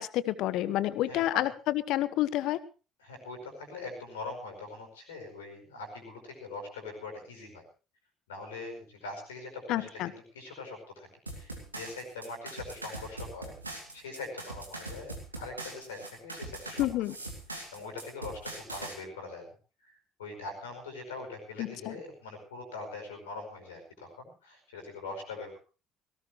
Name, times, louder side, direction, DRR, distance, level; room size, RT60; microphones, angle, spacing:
voice 1, 0.0-2.6 9.7-10.1 16.8-17.1 21.6-21.9, left 14 dB, 60° left, 17 dB, 1.0 m, -29 dB
voice 2, 1.1-1.4 3.0-7.6 8.3-16.8 17.5-19.5 19.8-25.6, left 3 dB, 80° left, 4 dB, 5.1 m, -42 dB
sound 1, 11.3-18.9, right 2 dB, 90° right, 2.6 m, -42 dB
18.5 x 18.0 x 3.1 m, 0.34 s
figure-of-eight pair, 50°, 0 cm